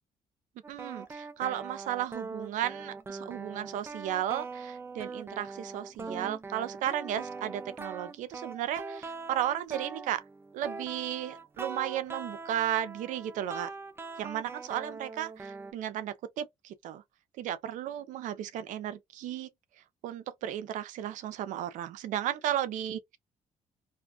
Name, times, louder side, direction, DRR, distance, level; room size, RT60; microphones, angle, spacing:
sound 1, 0.6-15.7, right 4 dB, 20° right, 0.4 m, -42 dB
voice 1, 0.7-10.2 10.5-13.7 14.2-17.0 17.4-19.5 20.0-23.2, right 11 dB, 85° right, 0.4 m, -34 dB
2.5 x 2.2 x 2.3 m
cardioid pair, 100°, 13 cm